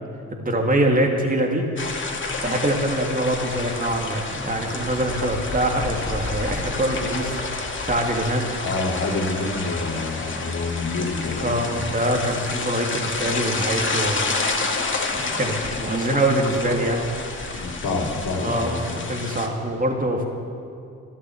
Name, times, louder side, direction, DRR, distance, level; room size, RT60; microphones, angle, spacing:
voice 1, 0.3-1.6 2.4-7.4 7.9-8.5 11.4-14.3 15.1-17.7 18.4-20.3, right 1 dB, 25° right, 1 dB, 2.4 m, -24 dB
sound 1, 1.8-19.5, left 3 dB, 35° left, 2.3 m, -29 dB
voice 2, 8.6-11.9 17.5-18.9, left 3 dB, 55° left, -3 dB, 2.9 m, -27 dB
13.0 x 11.5 x 7.8 m, 2.4 s
supercardioid pair, 50°, 34 cm